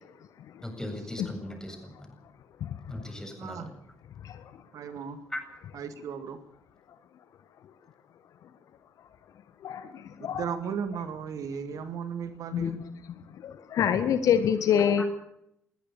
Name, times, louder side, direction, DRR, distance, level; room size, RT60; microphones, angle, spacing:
voice 1, 0.6-2.1 2.9-3.7 5.3-5.4 15.0-15.1, left 1 dB, 10° left, 5 dB, 7.8 m, -38 dB
voice 2, 3.3-3.7 4.7-5.2 5.7-6.4 10.2-12.8, right 7 dB, 55° right, 11 dB, 1.9 m, -36 dB
voice 3, 9.6-10.5 12.5-12.7 13.4-15.0, left 8 dB, 55° left, 11 dB, 1.6 m, -26 dB
22.0 x 17.0 x 6.9 m, 0.77 s
figure-of-eight pair, 45°, 7 cm